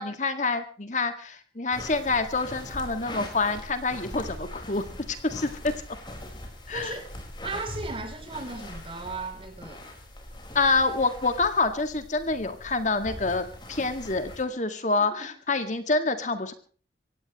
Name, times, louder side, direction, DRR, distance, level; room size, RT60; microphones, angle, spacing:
voice 1, 0.0-5.7 6.7-7.0 10.5-16.5, left 3 dB, 45° left, 2.0 m, -27 dB
sound 1, 1.7-14.4, left 1 dB, 25° left, 4.9 m, -41 dB
voice 2, 6.7-7.1 7.4-9.9 15.0-15.4, right 3 dB, 30° right, 3.5 m, -36 dB
25.0 x 17.0 x 3.1 m
head